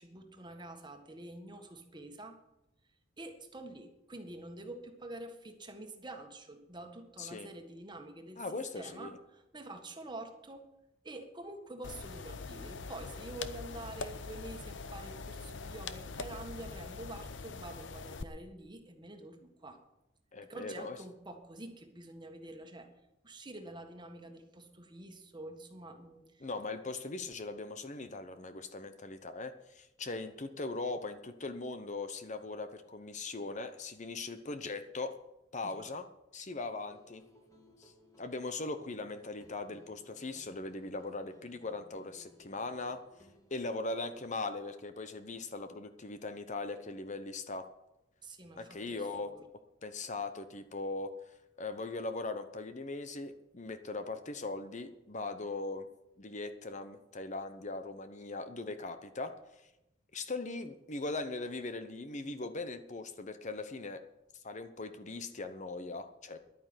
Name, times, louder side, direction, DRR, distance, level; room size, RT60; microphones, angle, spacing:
voice 1, 0.0-2.4 3.2-8.4 8.7-10.7 11.0-19.8 20.5-22.9 23.2-26.5 35.6-35.9 48.2-49.4, right 2 dB, 25° right, 5 dB, 1.6 m, -47 dB
voice 2, 8.4-9.2 20.3-21.0 26.4-35.2 35.5-36.1 36.3-37.2 37.8-43.0 43.5-47.7 48.6-49.3 49.8-51.1 51.6-55.9 56.2-59.3 60.1-64.0 64.4-66.4, left 3 dB, 40° left, 9 dB, 0.9 m, -40 dB
sound 1, 11.8-18.2, left 4 dB, 75° left, 0.8 m, -43 dB
sound 2, 36.9-44.4, left 1 dB, 20° left, 1.9 m, -62 dB
11.5 x 9.5 x 7.9 m, 0.90 s
head